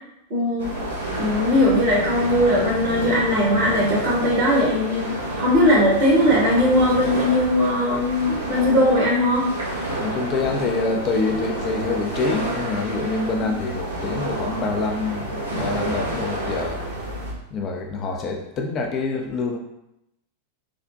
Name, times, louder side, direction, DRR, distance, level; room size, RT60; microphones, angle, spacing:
voice 1, 0.3-0.7 1.2-9.5, left 1 dB, 45° right, -5 dB, 1.2 m, -19 dB
sound 1, 0.6-17.3, right 1 dB, 75° right, 0.8 m, -29 dB
voice 2, 10.0-16.8 17.5-19.6, left 3 dB, 35° left, 2 dB, 0.4 m, -26 dB
3.4 x 2.1 x 2.6 m, 0.84 s
figure-of-eight pair, 90°, 0 cm